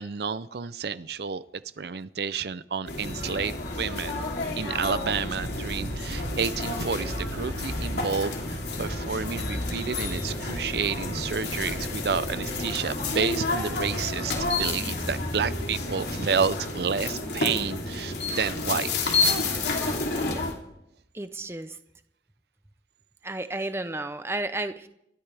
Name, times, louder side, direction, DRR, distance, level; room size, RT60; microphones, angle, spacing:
voice 1, 0.0-1.4 1.8-4.2 4.6-19.2, right 6 dB, 65° right, 15 dB, 0.5 m, -30 dB
sound 1, 2.9-20.5, left 2 dB, 70° left, 3.2 m, -30 dB
Thunder, 4.9-17.4, right 1 dB, 80° right, 1.1 m, -43 dB
voice 2, 21.1-21.7 23.2-24.9, right 2 dB, 15° right, 10 dB, 0.7 m, -32 dB
29.0 x 13.0 x 3.5 m, 0.79 s
head